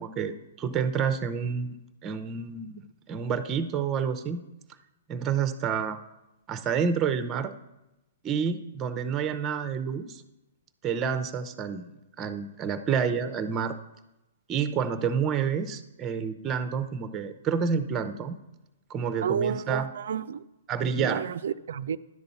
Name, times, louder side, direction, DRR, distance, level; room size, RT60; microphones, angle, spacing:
voice 1, 0.0-1.8 2.0-4.4 5.1-6.0 6.5-7.5 8.2-10.2 10.8-11.9 12.2-13.8 14.5-18.4 18.9-19.9 20.7-21.2, right 6 dB, 25° right, 10 dB, 0.6 m, -29 dB
voice 2, 19.2-20.4 21.0-22.0, right 8 dB, 70° right, 14 dB, 0.4 m, -31 dB
10.5 x 3.9 x 7.0 m, 0.97 s
hypercardioid pair, 130°, 0 cm